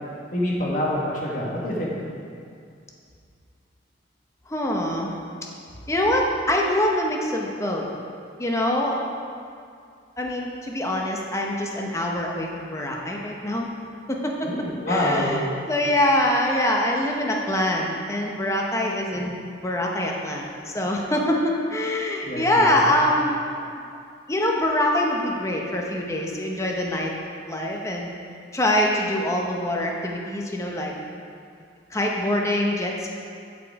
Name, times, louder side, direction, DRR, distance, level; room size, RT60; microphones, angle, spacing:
voice 1, 0.3-2.0 14.4-15.5 19.1-19.3 22.2-22.8, left 1 dB, 45° left, -4 dB, 1.6 m, -26 dB
voice 2, 4.5-5.1 5.9-7.9 8.4-9.1 10.2-13.7 14.1-14.5 14.9-23.4 24.3-27.1 27.5-28.1 28.5-30.9 31.9-33.2, left 1 dB, 15° left, -1 dB, 0.8 m, -24 dB
10.5 x 5.1 x 4.8 m, 2.4 s
head